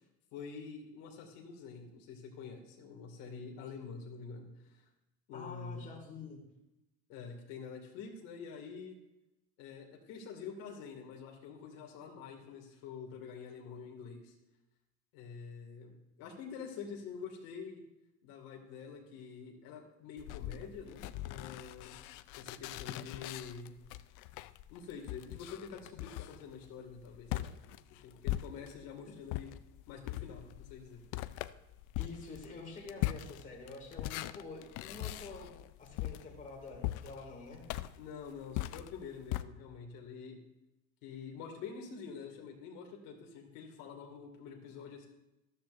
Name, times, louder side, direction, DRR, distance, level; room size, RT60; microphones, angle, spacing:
voice 1, 0.3-4.8 5.3-5.8 7.1-9.0 9.6-14.3 15.1-17.8 18.2-21.9 22.4-23.7 24.7-27.5 28.0-29.5 29.9-31.0 38.0-40.4 41.0-45.1, left 6 dB, 80° left, 2 dB, 2.2 m, -47 dB
voice 2, 5.3-6.5 29.1-29.2 32.0-37.6, left 3 dB, 25° left, -1 dB, 2.3 m, -48 dB
sound 1, 20.2-28.9 29.3-39.4, left 15 dB, 65° left, 0.5 m, -41 dB
13.5 x 13.0 x 2.6 m, 0.93 s
cardioid pair, 160°, 34 cm